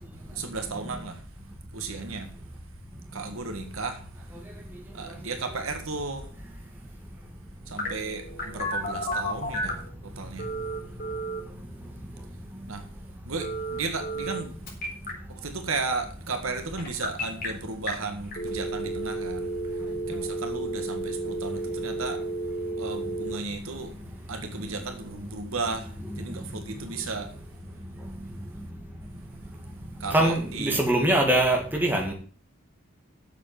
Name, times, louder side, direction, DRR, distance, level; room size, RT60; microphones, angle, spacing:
voice 1, 0.3-1.2 1.7-2.3 3.1-4.0 4.9-6.3 7.7-9.7 10.0-10.5 12.7-12.8 13.3-14.5 15.3-19.5 20.1-22.2 22.8-23.9 24.3-27.3 30.0-30.8, right 3 dB, 75° right, 1.7 m, -34 dB
Telephone, 7.8-9.9 10.4-11.4 13.4-14.4 14.7-15.1 16.8-17.5 17.9-18.0 18.3-23.4, right 1 dB, 40° left, 4.1 m, -32 dB
voice 2, 30.1-32.1, right 1 dB, 10° right, 2.2 m, -23 dB
7.8 x 7.3 x 7.5 m
head